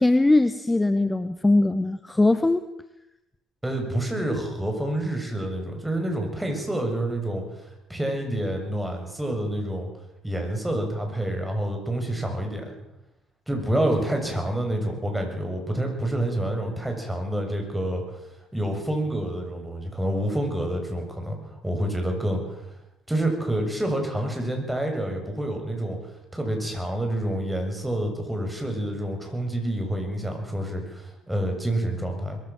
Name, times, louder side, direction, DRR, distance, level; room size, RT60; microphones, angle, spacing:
voice 1, 0.0-2.7, left 2 dB, 15° left, 12 dB, 1.1 m, -20 dB
voice 2, 3.6-9.9 10.2-12.8 13.5-18.0 18.5-21.4 21.6-22.6 23.1-26.0 26.3-32.4, right 1 dB, 10° right, 3 dB, 7.4 m, -28 dB
21.5 x 15.5 x 7.7 m, 0.92 s
hypercardioid pair, 50°, 0 cm